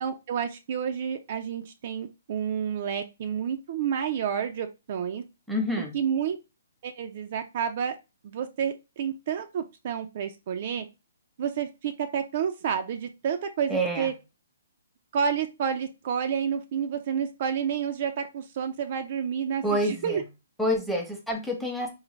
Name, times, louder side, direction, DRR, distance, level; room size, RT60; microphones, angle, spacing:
voice 1, 0.0-5.2 5.9-6.4 6.8-8.0 8.2-10.9 11.4-14.1 15.1-20.2, right 7 dB, 50° right, 6 dB, 0.4 m, -30 dB
voice 2, 5.5-5.9 13.7-14.1 19.6-20.2 20.6-21.9, equal, ahead, 2 dB, 0.8 m, -27 dB
3.9 x 2.1 x 3.1 m, 0.26 s
hypercardioid pair, 140°, 0 cm